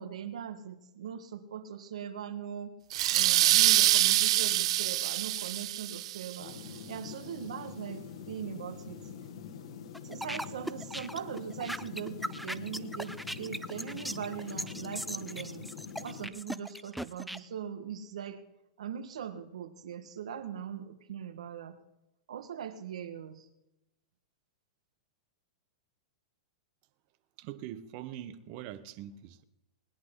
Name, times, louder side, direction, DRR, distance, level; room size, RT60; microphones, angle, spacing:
voice 1, 0.0-2.8 3.1-9.0 10.0-15.7 16.0-18.4 18.8-21.8 22.3-23.5, right 8 dB, 85° right, 1.7 m, -40 dB
sound 1, 2.9-6.4, right 14 dB, 65° right, 0.6 m, -25 dB
sound 2, 6.4-16.3, left 7 dB, 65° left, 1.9 m, -45 dB
sound 3, 9.9-17.4, equal, ahead, 0.4 m, -39 dB
voice 2, 27.4-29.4, right 11 dB, 45° right, 1.2 m, -43 dB
20.5 x 10.5 x 3.9 m
hypercardioid pair, 140°, 3 cm